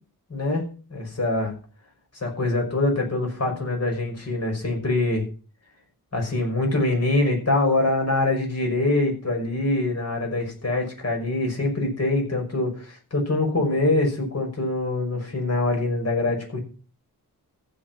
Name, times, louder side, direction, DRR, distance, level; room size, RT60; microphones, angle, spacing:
voice 1, 0.3-0.6 0.9-1.5 2.1-5.2 6.1-16.6, left 2 dB, 40° left, 2 dB, 5.9 m, -24 dB
15.0 x 7.0 x 6.1 m, 0.36 s
wide cardioid pair, 105°, 37 cm